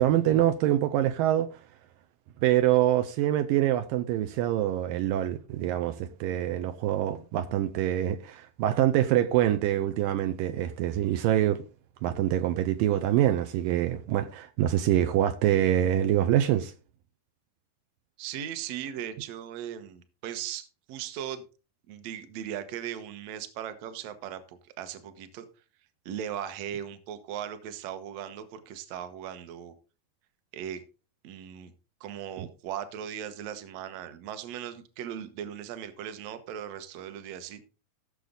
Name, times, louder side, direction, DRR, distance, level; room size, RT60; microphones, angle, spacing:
voice 1, 0.0-1.5 2.4-11.6 12.0-16.7 32.4-32.5, right 12 dB, 80° right, 2.3 m, -25 dB
voice 2, 18.2-21.4 21.9-25.5 26.1-29.7 30.5-30.8 31.2-31.7 32.0-37.6, right 9 dB, 60° right, 1.9 m, -38 dB
15.5 x 6.8 x 3.9 m
omnidirectional pair, 4.2 m